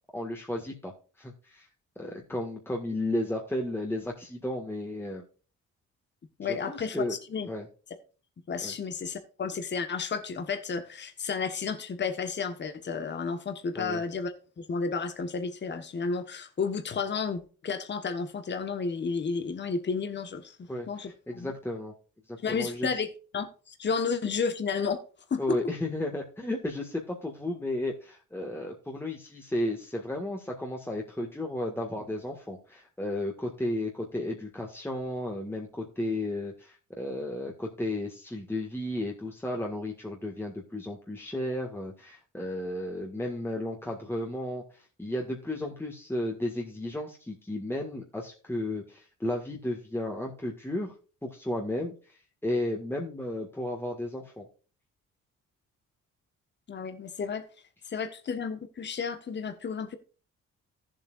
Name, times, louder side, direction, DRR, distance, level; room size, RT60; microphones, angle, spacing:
voice 1, 0.1-0.9 1.2-1.7 1.9-5.2 6.4-7.2 7.5-7.7 8.6-8.7 13.7-14.0 20.7-21.9 22.3-22.9 25.4-50.9 51.2-54.4, left 1 dB, 5° left, 1.7 m, -33 dB
voice 2, 6.4-7.5 8.5-20.6 20.9-21.5 22.4-23.1 23.3-25.0 25.3-25.6 56.7-57.4 57.9-60.0, left 5 dB, 35° left, 1.3 m, -32 dB
14.5 x 7.6 x 2.5 m
cardioid pair, 90°, 30 cm